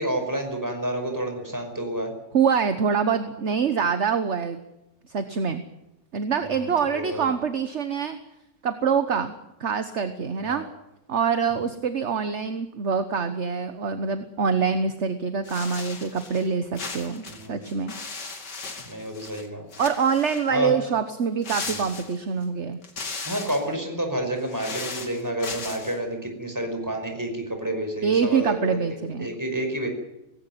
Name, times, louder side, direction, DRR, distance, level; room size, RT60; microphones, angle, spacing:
voice 1, 0.0-2.1 6.5-7.3 10.4-10.6 17.3-17.6 18.9-19.7 20.5-20.7 21.7-21.8 23.2-28.8 29.2-29.9, right 1 dB, 10° right, 4 dB, 5.4 m, -29 dB
voice 2, 2.3-4.6 5.1-5.6 6.1-8.2 8.6-10.7 11.1-17.9 19.8-22.8 28.0-29.3, right 6 dB, 45° right, 10 dB, 1.3 m, -25 dB
sound 1, 15.4-16.5 16.7-19.5 19.7-20.5 21.4-22.4 22.8-23.7 24.3-26.0, left 4 dB, 70° left, 3.3 m, -37 dB
19.0 x 17.5 x 9.3 m, 0.91 s
omnidirectional pair, 1.9 m